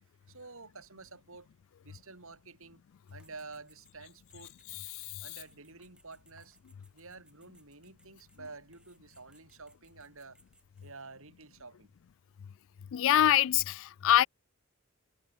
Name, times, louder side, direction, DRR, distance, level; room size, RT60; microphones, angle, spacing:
voice 1, 0.3-1.5 1.8-2.8 3.1-4.5 5.2-6.6 6.9-10.4 10.8-11.9, right 3 dB, 65° right, 6.0 m, -50 dB
sound 1, 3.1-10.9, right 1 dB, 5° right, 7.5 m, -67 dB
voice 2, 12.9-14.3, left 12 dB, 65° left, 0.4 m, -25 dB
head